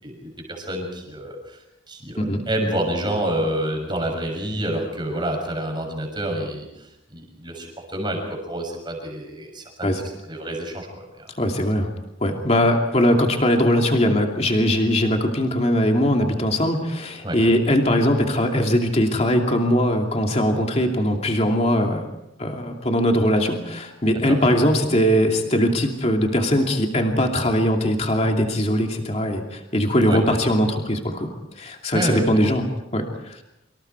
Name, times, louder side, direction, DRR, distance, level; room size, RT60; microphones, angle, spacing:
voice 1, 0.0-1.6 1.9-6.7 7.1-10.0 10.3-10.9 11.2-11.3 17.2-17.4 24.3-24.4 30.1-30.2 31.9-32.2, right 1 dB, 25° right, 3 dB, 6.5 m, -28 dB
voice 2, 11.4-11.9 12.2-22.0 22.4-31.3 31.6-32.6 32.9-33.4, equal, 35° left, 2 dB, 2.6 m, -20 dB
27.0 x 26.0 x 4.7 m, 0.89 s
head